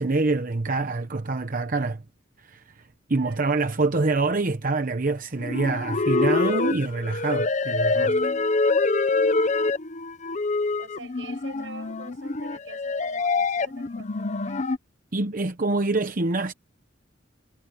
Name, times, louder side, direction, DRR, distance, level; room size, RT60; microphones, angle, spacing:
voice 1, 0.0-2.0 2.4-2.8 3.1-8.3 15.1-16.5, right 3 dB, 45° right, 0.9 m, -26 dB
voice 2, 3.1-3.6 10.8-14.7, right 3 dB, 80° right, 5.6 m, -45 dB
sound 1, 5.4-14.8, left 3 dB, 40° left, 0.8 m, -25 dB
head